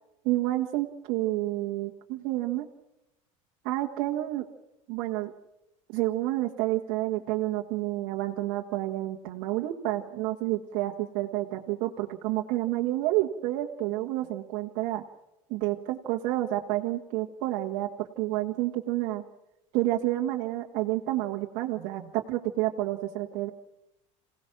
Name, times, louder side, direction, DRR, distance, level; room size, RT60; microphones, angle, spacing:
voice 1, 0.2-2.7 3.6-4.4 4.9-5.3 5.9-15.0 15.5-19.2 19.7-23.5, right 16 dB, 70° right, 1 dB, 1.7 m, -29 dB
27.5 x 17.5 x 6.1 m, 0.89 s
supercardioid pair, 100°, 17 cm